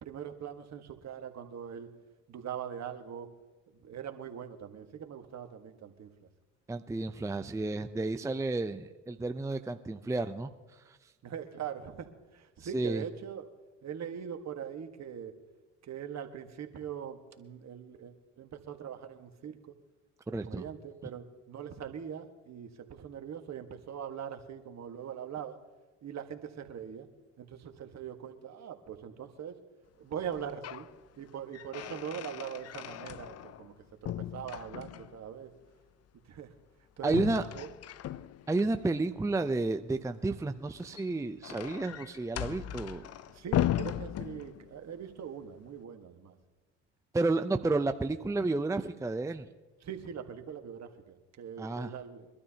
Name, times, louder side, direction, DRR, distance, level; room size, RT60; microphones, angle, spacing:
voice 1, 0.0-1.9 2.3-3.3 3.8-6.1 11.2-13.5 13.8-15.3 15.8-19.6 20.4-25.6 26.0-27.1 27.4-29.5 30.0-30.9 31.2-33.7 34.0-35.5 36.3-36.5 37.0-37.2 37.5-37.7 43.3-46.3 49.8-52.3, right 8 dB, 50° right, 6 dB, 1.6 m, -42 dB
voice 2, 6.7-10.5 10.9-11.0 12.6-13.0 20.3-20.6 37.0-37.4 38.5-43.1 47.1-49.5 51.6-51.9, right 2 dB, 10° right, 8 dB, 0.6 m, -31 dB
sound 1, 30.3-30.9 31.3-33.7 34.0-35.2 37.0-38.7 40.7-44.8, left 12 dB, 45° left, 0.6 m, -37 dB
23.5 x 12.5 x 2.9 m, 1.2 s
supercardioid pair, 70°, 34 cm